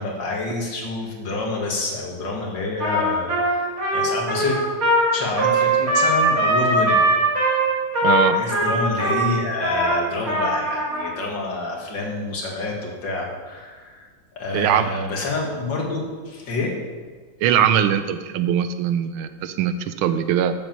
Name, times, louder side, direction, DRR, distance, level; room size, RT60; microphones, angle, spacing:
voice 1, 0.0-3.7 3.9-4.6 5.1-7.1 8.2-14.1 14.3-16.8, left 3 dB, 60° left, -1 dB, 2.4 m, -28 dB
Trumpet, 2.8-11.1, right 1 dB, 40° right, 2.5 m, -20 dB
voice 2, 8.0-8.4 14.5-14.9 17.4-20.5, right 9 dB, 80° right, 10 dB, 1.4 m, -21 dB
8.4 x 7.2 x 7.3 m, 1.5 s
omnidirectional pair, 2.4 m